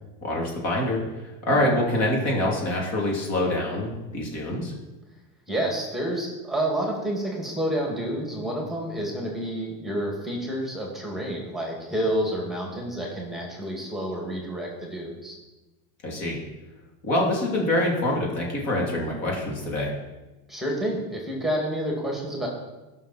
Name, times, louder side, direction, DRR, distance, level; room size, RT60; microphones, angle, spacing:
voice 1, 0.2-4.7 16.0-16.4 17.0-19.9, left 1 dB, 30° left, -2 dB, 3.0 m, -25 dB
voice 2, 5.5-15.4 20.5-22.5, right 1 dB, ahead, -1 dB, 2.2 m, -29 dB
17.0 x 6.5 x 4.3 m, 1.1 s
supercardioid pair, 155°, 49 cm